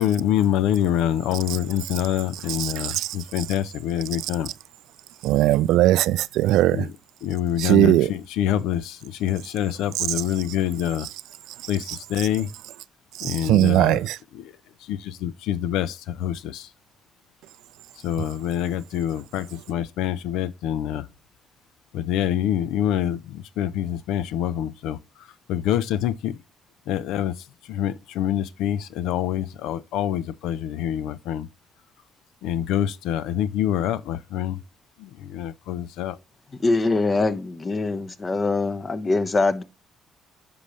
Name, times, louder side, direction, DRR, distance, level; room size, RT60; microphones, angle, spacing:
voice 1, 0.0-4.5 6.7-6.8 7.2-11.1 11.7-11.8 12.1-12.5 13.2-13.9 14.9-16.6 18.0-21.0 21.9-23.2 23.6-25.0 25.5-26.3 26.9-27.3 27.7-31.5 32.4-34.6 35.3-36.2, left 11 dB, 80° left, 0.4 m, -25 dB
voice 2, 1.5-2.0 2.5-3.4 4.2-4.3 5.2-6.9 7.6-8.1 9.9-10.2 11.0-11.1 11.9-12.3 13.2-14.2, right 14 dB, 80° right, 0.3 m, -21 dB
voice 3, 36.6-39.6, left 3 dB, 35° left, 1.0 m, -23 dB
9.7 x 5.3 x 3.1 m
supercardioid pair, 60°, 0 cm